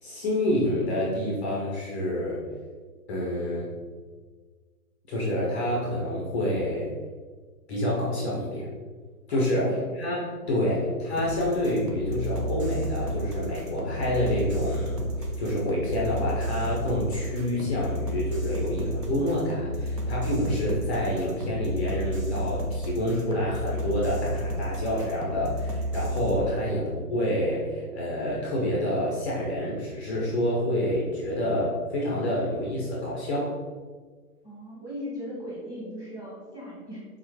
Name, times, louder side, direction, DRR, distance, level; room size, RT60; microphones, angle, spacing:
voice 1, 0.0-2.4 3.1-3.7 5.1-6.9 7.7-8.7 9.3-33.6, left 1 dB, 10° left, -5 dB, 0.6 m, -28 dB
voice 2, 9.3-9.9 10.4-10.6 34.4-37.0, equal, 5° right, -7 dB, 1.4 m, -39 dB
sound 1, 11.2-26.4, equal, 90° right, 1.6 m, -31 dB
4.8 x 4.2 x 4.5 m, 1.5 s
hypercardioid pair, 155°, 46 cm